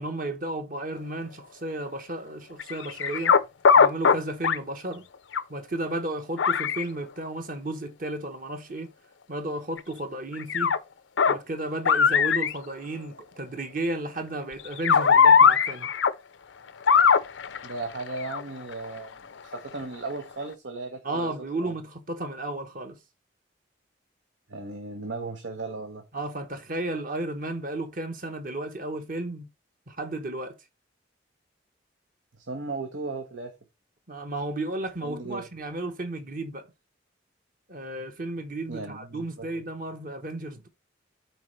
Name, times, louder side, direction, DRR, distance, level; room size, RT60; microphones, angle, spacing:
voice 1, 0.0-3.3 3.8-5.0 5.5-8.9 9.3-10.8 11.3-15.9 21.0-23.0 26.1-29.5 29.9-30.6 34.1-36.7 37.7-40.7, right 2 dB, 45° right, 1.1 m, -33 dB
sound 1, 2.6-3.4 3.6-4.2 4.4-4.6 5.3-5.4 6.4-6.8 9.8-9.9 10.3-10.8 11.2-11.4 11.9-12.5 14.6-16.1 16.9-18.9 19.5-19.7 20.0-20.1, left 6 dB, 90° left, 0.7 m, -19 dB
voice 2, 17.6-19.1 19.4-21.3 21.6-21.7 24.5-26.0 32.4-33.5 35.0-35.4 38.7-39.5, right 3 dB, 85° right, 1.1 m, -36 dB
11.5 x 4.4 x 3.2 m
head